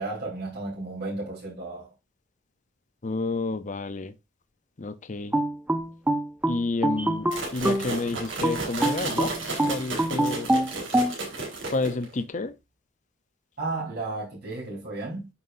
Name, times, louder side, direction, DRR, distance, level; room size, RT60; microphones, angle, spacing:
voice 1, 0.0-1.9 13.6-15.3, right 2 dB, 55° right, 4.2 m, -33 dB
voice 2, 3.0-4.1 4.8-5.4 6.4-10.5 11.7-12.5, left 3 dB, 40° left, 0.7 m, -30 dB
sound 1, 5.3-7.9 8.4-11.1, right 1 dB, 10° right, 0.8 m, -25 dB
sound 2, 7.3-12.2, right 3 dB, 75° right, 4.1 m, -33 dB
9.5 x 5.7 x 2.6 m
head